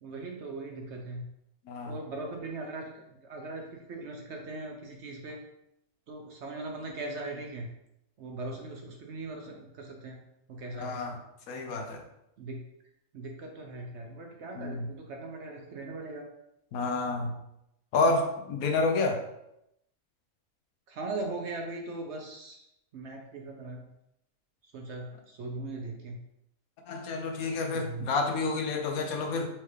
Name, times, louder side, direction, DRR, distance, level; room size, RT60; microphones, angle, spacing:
voice 1, 0.0-1.2 1.8-2.9 3.2-5.4 6.1-7.7 8.2-10.2 10.5-11.0 12.4-12.6 13.1-16.3 20.9-22.6 22.9-23.8 24.6-26.2 27.7-28.1, right 2 dB, 65° right, 1 dB, 0.8 m, -39 dB
voice 2, 10.8-11.1 11.5-12.0 14.5-14.9 16.7-17.3 17.9-19.2 26.9-29.5, left 3 dB, 75° left, 4 dB, 1.2 m, -29 dB
4.3 x 3.7 x 3.2 m, 0.82 s
omnidirectional pair, 1.5 m